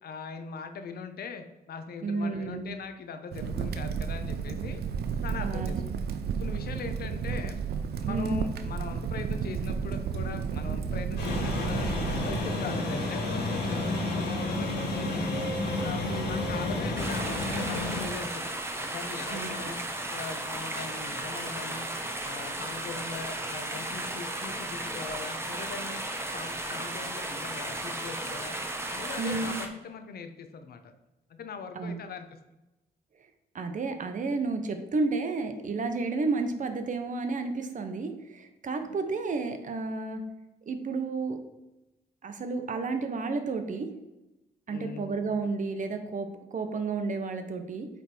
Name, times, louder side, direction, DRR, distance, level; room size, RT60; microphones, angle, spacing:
voice 1, 0.0-4.8 5.2-6.0 6.4-7.6 8.0-11.9 12.2-15.3 15.8-18.5 18.8-19.8 20.1-21.9 22.2-26.0 26.3-28.6 28.9-30.9 31.3-32.2 44.7-45.1, left 5 dB, 70° left, 7 dB, 0.8 m, -40 dB
voice 2, 2.0-2.7 5.4-6.0 8.1-8.4 16.0-16.5 19.3-19.5 29.2-29.6 31.7-32.0 33.5-40.2 40.7-41.4 42.2-43.9 44.7-47.9, right 3 dB, 50° right, 7 dB, 0.9 m, -31 dB
Crackle, 3.3-12.4, right 6 dB, 75° right, 0.6 m, -32 dB
sound 1, 11.2-18.1, left 2 dB, 85° left, 2.3 m, -30 dB
sound 2, 17.0-29.7, right 1 dB, 15° right, 0.9 m, -35 dB
8.2 x 3.5 x 4.4 m, 0.98 s
cardioid pair, 100°, 17 cm